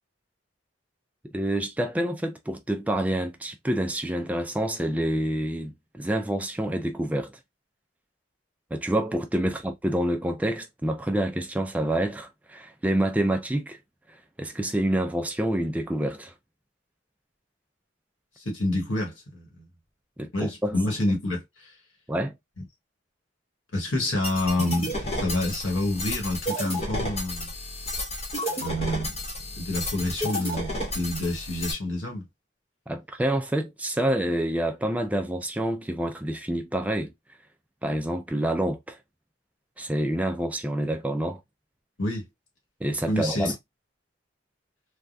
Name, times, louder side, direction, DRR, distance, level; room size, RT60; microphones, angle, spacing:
voice 1, 1.2-7.4 8.7-13.8 14.4-16.3 20.2-20.8 22.1-22.3 32.9-37.1 37.8-39.0 39.8-41.4 42.8-43.5, right 1 dB, 5° right, 0.3 m, -27 dB
voice 2, 18.4-19.6 20.3-21.7 23.7-27.5 28.5-29.1 29.5-32.2 42.0-42.3 43.1-43.5, left 1 dB, 75° left, 1.3 m, -28 dB
sound 1, 24.2-31.7, left 1 dB, 30° left, 0.9 m, -31 dB
3.4 x 2.2 x 2.5 m
head